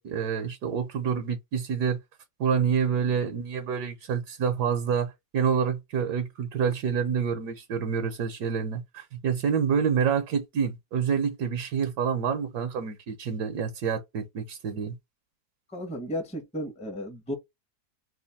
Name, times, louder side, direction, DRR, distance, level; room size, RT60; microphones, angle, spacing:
voice 1, 0.0-2.0 2.4-15.0, right 7 dB, 70° right, 1.3 m, -27 dB
voice 2, 15.7-17.3, equal, 5° left, 0.7 m, -34 dB
4.1 x 2.6 x 4.1 m
omnidirectional pair, 1.9 m